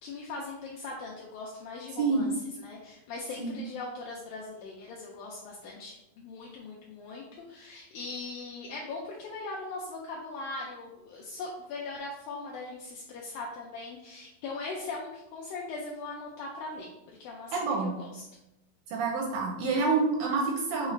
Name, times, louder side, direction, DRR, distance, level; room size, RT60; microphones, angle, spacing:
voice 1, 0.0-2.3 2.6-16.9 17.2-18.3, left 3 dB, 80° left, -2 dB, 2.1 m, -40 dB
voice 2, 17.5-17.9 18.9-20.9, right 4 dB, 85° right, -1 dB, 2.0 m, -27 dB
6.3 x 2.4 x 3.1 m, 0.91 s
omnidirectional pair, 4.4 m